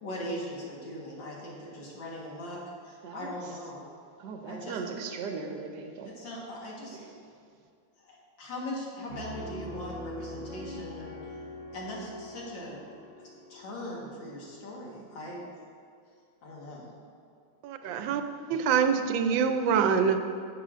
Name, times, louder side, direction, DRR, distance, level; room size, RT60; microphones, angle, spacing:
voice 1, 0.0-3.9 4.4-4.8 6.1-7.0 8.0-11.4 11.7-12.8 13.2-15.7 16.4-16.9, left 1 dB, 75° left, -3 dB, 2.2 m, -40 dB
voice 2, 4.2-6.1 6.9-7.1, right 5 dB, 70° right, 4 dB, 1.2 m, -38 dB
Piano, 9.1-14.6, left 1 dB, 40° left, 1.7 m, -43 dB
voice 3, 17.6-18.2 18.5-20.2, right 6 dB, 85° right, 8 dB, 1.3 m, -25 dB
10.5 x 7.9 x 2.5 m, 2.3 s
omnidirectional pair, 2.0 m